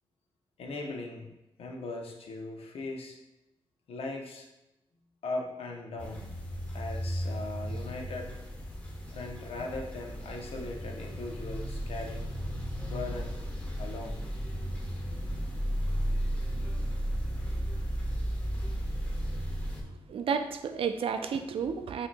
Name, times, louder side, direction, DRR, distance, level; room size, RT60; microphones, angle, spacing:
voice 1, 0.6-1.3 1.6-3.2 3.9-4.5 5.2-6.3 6.7-8.3 9.1-12.3 12.8-13.4 13.8-14.2, left 2 dB, 75° left, 2 dB, 0.7 m, -39 dB
sound 1, 6.0-19.8, equal, 15° left, 1.0 m, -34 dB
voice 2, 19.8-22.1, right 6 dB, 70° right, 8 dB, 0.4 m, -32 dB
5.9 x 2.7 x 2.2 m, 0.92 s
cardioid pair, 75°, 10 cm